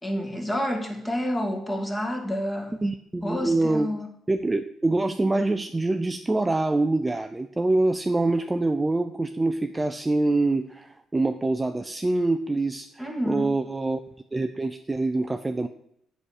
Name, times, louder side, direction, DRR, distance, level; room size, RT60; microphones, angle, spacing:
voice 1, 0.0-2.8 3.2-4.1 13.0-13.5, equal, 15° left, 3 dB, 1.8 m, -29 dB
voice 2, 2.8-3.9 4.3-14.0 14.3-15.7, right 2 dB, 15° right, 8 dB, 0.4 m, -25 dB
7.8 x 5.6 x 6.5 m, 0.72 s
cardioid pair, 125°, 0 cm